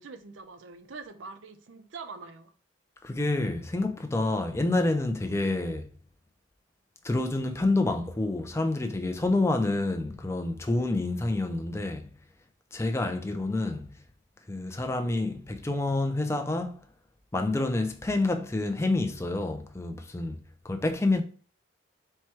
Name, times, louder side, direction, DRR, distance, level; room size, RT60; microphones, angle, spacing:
voice 1, 0.0-2.5, right 4 dB, 75° right, 0.6 m, -44 dB
voice 2, 3.0-5.9 7.0-12.1 12.7-14.0 14.5-16.8 17.3-20.4 20.6-21.2, left 2 dB, 15° left, 0.4 m, -28 dB
4.4 x 2.2 x 4.5 m
head